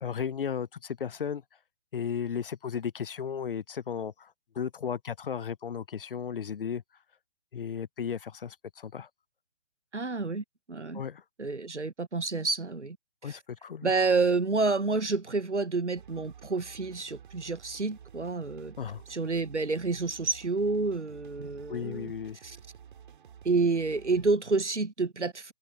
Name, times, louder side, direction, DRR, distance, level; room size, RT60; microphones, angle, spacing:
voice 1, 0.0-1.4 1.9-6.8 7.5-9.1 10.9-11.2 13.2-13.9 18.8-19.0 21.7-22.4, left 7 dB, 50° left, 0.8 m, -35 dB
voice 2, 9.9-11.0 11.4-13.0 13.2-13.4 13.8-18.7 19.1-22.1 22.4-22.6 23.4-25.5, right 3 dB, 90° right, 0.9 m, -29 dB
sound 1, 15.9-24.3, right 8 dB, 45° right, 5.6 m, -51 dB
figure-of-eight pair, 130°, 34 cm